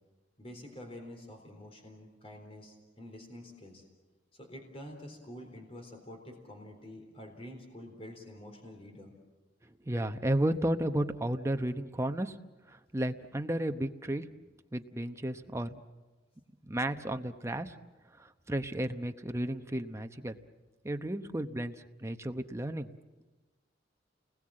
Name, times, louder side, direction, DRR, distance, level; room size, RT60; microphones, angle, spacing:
voice 1, 0.4-3.8 4.3-9.1, left 1 dB, 35° left, 3 dB, 3.8 m, -48 dB
voice 2, 9.8-12.3 12.7-14.2 14.7-15.8 16.7-17.7 18.2-20.4 20.8-21.7 22.0-23.0, right 1 dB, 15° right, 7 dB, 0.9 m, -33 dB
29.5 x 20.5 x 7.6 m, 1.2 s
head